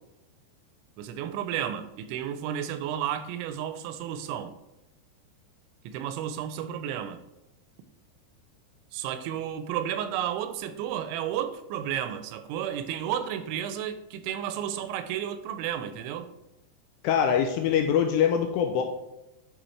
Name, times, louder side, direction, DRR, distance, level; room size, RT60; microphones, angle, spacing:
voice 1, 1.0-4.5 5.8-7.2 8.9-16.3, right 10 dB, 85° right, 10 dB, 2.9 m, -32 dB
voice 2, 17.0-18.8, left 8 dB, 85° left, 4 dB, 2.5 m, -23 dB
8.9 x 5.6 x 3.2 m, 0.91 s
omnidirectional pair, 5.3 m